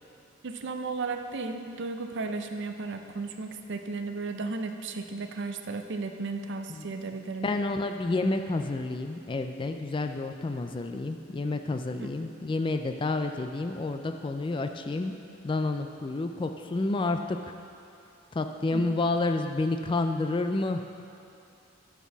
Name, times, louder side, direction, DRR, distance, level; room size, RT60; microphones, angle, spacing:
voice 1, 0.4-7.5 12.0-12.1 18.7-19.0, right 3 dB, 60° right, 6 dB, 0.5 m, -34 dB
voice 2, 7.4-15.1 15.4-17.4 18.3-20.8, left 2 dB, 25° left, 6 dB, 0.3 m, -29 dB
10.0 x 4.5 x 6.0 m, 2.8 s
head